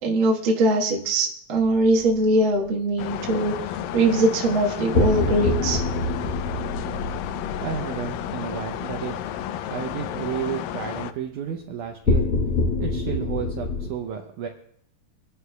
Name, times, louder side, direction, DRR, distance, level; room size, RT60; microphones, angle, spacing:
voice 1, 0.0-3.5 3.9-5.8, right 2 dB, 50° right, -1 dB, 1.5 m, -21 dB
sound 1, 1.6-2.1 4.9-9.2 12.1-13.9, left 2 dB, 55° left, 1.6 m, -26 dB
sound 2, 3.0-11.1, left 11 dB, 80° left, 2.2 m, -32 dB
voice 2, 7.6-9.2 9.7-12.3 12.8-14.5, right 8 dB, 75° right, 3 dB, 1.9 m, -32 dB
25.0 x 11.5 x 2.3 m, 0.65 s
omnidirectional pair, 4.3 m